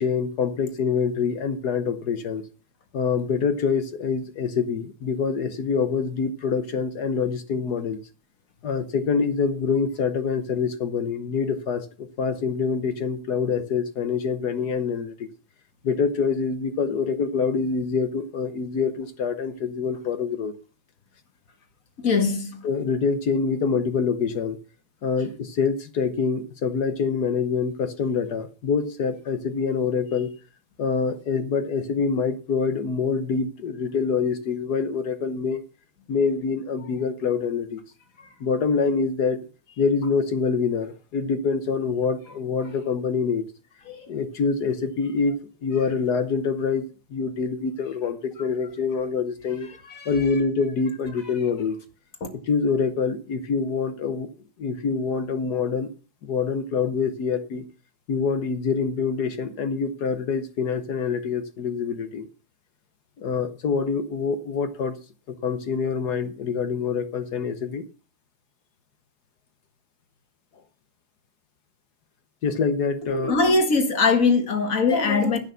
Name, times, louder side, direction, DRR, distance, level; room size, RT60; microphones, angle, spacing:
voice 1, 0.0-2.4 2.9-8.0 8.6-15.3 15.8-20.5 22.6-24.6 25.0-30.3 30.8-35.6 36.1-37.8 38.4-39.4 39.8-43.4 44.1-45.4 45.6-46.8 47.1-49.7 50.0-51.8 52.5-54.3 54.6-55.9 56.2-57.6 58.1-62.3 63.2-65.0 65.3-67.8 72.4-73.3, left 5 dB, 55° left, 1.4 m, -25 dB
voice 2, 22.0-22.6 38.2-38.3 43.9-44.0 49.9-50.1 73.1-75.4, left 4 dB, 40° left, 2.1 m, -21 dB
13.5 x 6.3 x 6.8 m
omnidirectional pair, 2.2 m